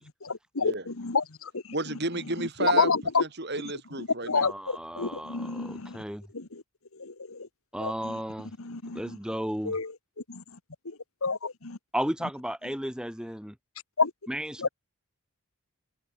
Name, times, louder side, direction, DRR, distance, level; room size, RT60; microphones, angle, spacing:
voice 1, 0.2-1.5 2.6-3.2 4.2-6.0 6.3-6.6 7.0-7.4 7.8-8.1 8.6-9.0 9.6-9.9 10.3-10.4 11.2-11.8 14.0-14.1 14.6-14.7, left 4 dB, 75° left, 1.4 m, -28 dB
voice 2, 1.7-2.9 3.2-4.5, right 2 dB, 50° right, 4.9 m, -31 dB
voice 3, 4.4-6.2 7.7-8.5 8.9-9.8 11.9-13.5 14.3-14.7, equal, 5° right, 3.9 m, -34 dB
open air
head